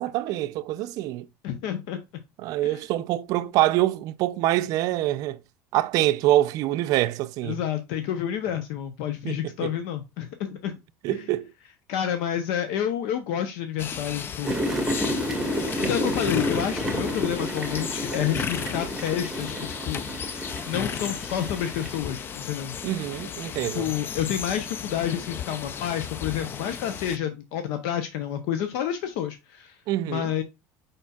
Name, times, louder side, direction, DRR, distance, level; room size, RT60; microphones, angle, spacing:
voice 1, 0.0-1.3 2.4-5.4 5.7-7.6 9.2-9.7 11.0-11.5 22.8-23.9 29.9-30.3, right 15 dB, 60° right, 0.5 m, -25 dB
voice 2, 1.4-2.2 2.6-2.8 7.4-10.8 11.1-11.3 11.9-14.5 15.8-20.1 20.4-22.8 23.6-29.8 30.1-30.4, left 10 dB, 75° left, 0.7 m, -29 dB
sound 1, 13.8-27.2, left 7 dB, 30° left, 0.4 m, -35 dB
sound 2, 14.4-22.0, equal, 5° right, 1.5 m, -30 dB
5.2 x 4.2 x 2.3 m
cardioid pair, 130°, 7 cm